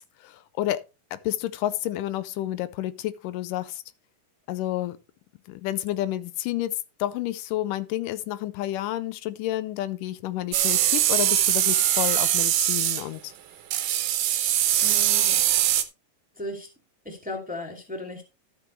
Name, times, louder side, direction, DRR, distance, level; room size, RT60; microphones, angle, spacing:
voice 1, 0.2-0.8 1.1-3.8 4.5-5.0 5.5-13.3, left 14 dB, 85° left, 2.2 m, -30 dB
sound 1, 10.5-13.0 13.7-15.8, right 12 dB, 75° right, 2.5 m, -22 dB
voice 2, 14.8-15.5 16.3-16.7 17.0-18.2, left 1 dB, 5° right, 2.0 m, -36 dB
12.5 x 8.3 x 3.2 m
omnidirectional pair, 3.8 m